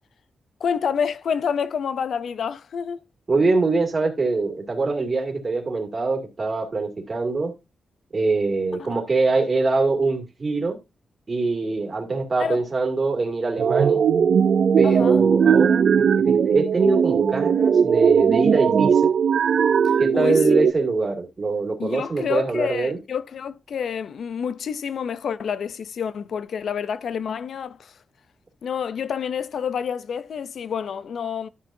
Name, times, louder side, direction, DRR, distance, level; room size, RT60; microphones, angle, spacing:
voice 1, 0.6-3.0 8.8-9.0 12.4-12.6 14.8-15.2 19.8-20.4 21.8-28.0 28.6-31.5, left 7 dB, 60° left, 0.5 m, -28 dB
voice 2, 3.3-7.5 8.1-10.8 11.3-14.1 14.8-19.1 20.0-23.0, right 3 dB, 30° right, 2.2 m, -23 dB
sound 1, 13.6-20.7, right 7 dB, 60° right, 0.4 m, -18 dB
11.5 x 7.2 x 2.6 m
wide cardioid pair, 165°, 0 cm